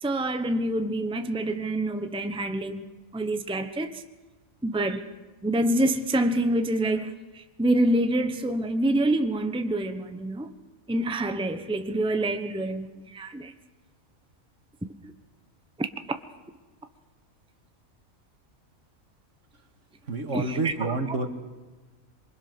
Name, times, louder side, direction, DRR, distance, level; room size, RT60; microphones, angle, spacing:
voice 1, 0.0-2.8 3.1-4.0 4.6-5.0 5.4-10.5 10.9-13.5 15.8-16.2 20.3-20.9, right 1 dB, 5° right, 1.0 m, -26 dB
voice 2, 20.0-21.3, right 3 dB, 60° right, 2.4 m, -28 dB
26.5 x 24.0 x 6.2 m
omnidirectional pair, 1.4 m